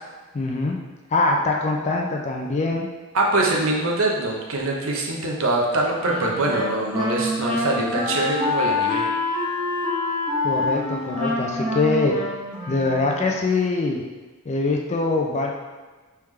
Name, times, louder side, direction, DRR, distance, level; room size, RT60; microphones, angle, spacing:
voice 1, 0.3-0.8 1.1-2.9 10.4-12.2 12.7-14.0 14.5-15.5, left 3 dB, 30° left, 1 dB, 0.4 m, -23 dB
voice 2, 3.1-9.1, right 2 dB, 65° right, -1 dB, 0.7 m, -23 dB
Wind instrument woodwind instrument, 6.0-13.4, left 2 dB, 20° right, 1.0 m, -26 dB
3.4 x 3.4 x 3.2 m, 1.3 s
head